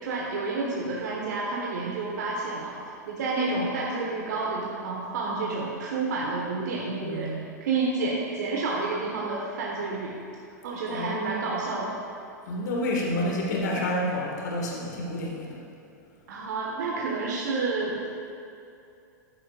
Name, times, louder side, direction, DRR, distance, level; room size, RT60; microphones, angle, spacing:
voice 1, 0.0-2.7 3.1-7.3 7.6-10.1 10.6-12.0 16.3-18.1, right 3 dB, 65° right, -4 dB, 1.5 m, -29 dB
voice 2, 7.0-7.4 10.9-11.2 12.5-15.6, left 1 dB, 65° left, -2 dB, 1.8 m, -29 dB
13.0 x 9.8 x 2.5 m, 2.6 s
hypercardioid pair, 100°, 10 cm